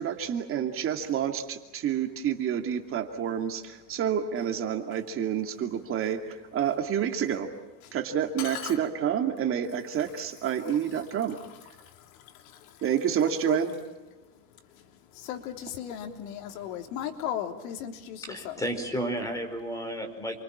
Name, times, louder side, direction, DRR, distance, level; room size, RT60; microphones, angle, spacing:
voice 1, 0.0-7.5 7.9-11.4 12.8-13.7, right 9 dB, 30° right, 5 dB, 2.5 m, -29 dB
voice 2, 8.4-8.8 10.7-11.1 11.4-12.8 13.2-13.6 14.7-18.6, left 10 dB, 90° left, 6 dB, 3.4 m, -38 dB
voice 3, 18.2-20.4, equal, 10° left, 5 dB, 4.8 m, -32 dB
29.0 x 24.5 x 7.4 m, 1.1 s
cardioid pair, 165°, 40 cm